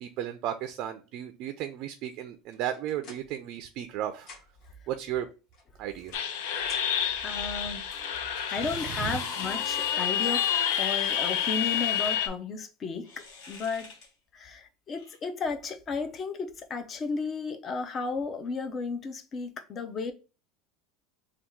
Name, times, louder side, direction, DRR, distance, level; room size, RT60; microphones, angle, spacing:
voice 1, 0.0-4.3 4.9-5.3 5.8-6.1 9.0-9.2, right 11 dB, 50° right, 0.4 m, -34 dB
sound 1, 2.5-3.9 4.1-4.7 5.5-7.2, left 3 dB, 45° left, 1.4 m, -51 dB
sound 2, 6.1-12.3, left 9 dB, 85° left, 0.7 m, -29 dB
voice 2, 7.2-10.5 10.8-13.9 14.3-20.1, left 4 dB, 30° left, 0.6 m, -34 dB
sound 3, 7.9-12.2 13.0-14.1 15.0-15.1, left 4 dB, 65° left, 1.3 m, -41 dB
3.5 x 2.3 x 4.4 m
supercardioid pair, 150°, 0 cm